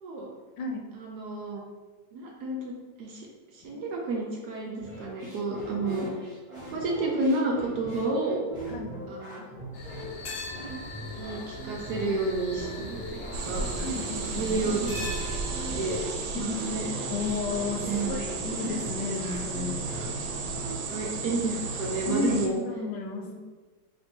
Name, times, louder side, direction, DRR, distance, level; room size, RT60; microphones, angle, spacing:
voice 1, 0.0-0.3 0.9-1.6 2.1-3.3 3.5-6.1 6.7-8.4 9.1-9.5 11.1-13.7 14.4-15.0 15.6-16.0 16.3-16.9 17.9-18.2 20.9-22.6 23.3-23.4, right 2 dB, 70° right, -2 dB, 1.1 m, -31 dB
voice 2, 0.6-0.9 3.7-3.8 8.7-9.1 13.8-14.5 16.4-16.8 17.1-19.8 22.1-23.3, left 4 dB, 80° left, 1 dB, 1.3 m, -33 dB
sound 1, 4.8-20.8, right 1 dB, 25° right, 1.0 m, -41 dB
sound 2, 9.7-16.0, left 1 dB, 65° left, 1.0 m, -40 dB
sound 3, 13.3-22.5, right 4 dB, 90° right, 1.3 m, -34 dB
3.2 x 2.6 x 4.3 m, 1.3 s
omnidirectional pair, 2.0 m